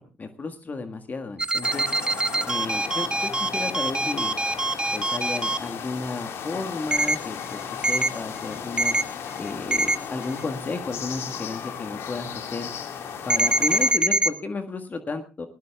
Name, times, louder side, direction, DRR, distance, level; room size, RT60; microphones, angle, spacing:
voice 1, 0.2-1.9 2.5-4.4 4.9-8.9 9.4-12.7 13.2-15.5, left 3 dB, 35° left, 7 dB, 1.6 m, -33 dB
sound 1, 1.4-5.6 6.9-7.2 7.8-8.1 8.8-9.0 9.7-10.0 13.3-14.3, right 2 dB, 20° right, 1.2 m, -23 dB
sound 2, 1.6-13.9, left 7 dB, 60° left, 2.0 m, -35 dB
21.0 x 17.5 x 2.3 m, 0.32 s
figure-of-eight pair, 45°, 5 cm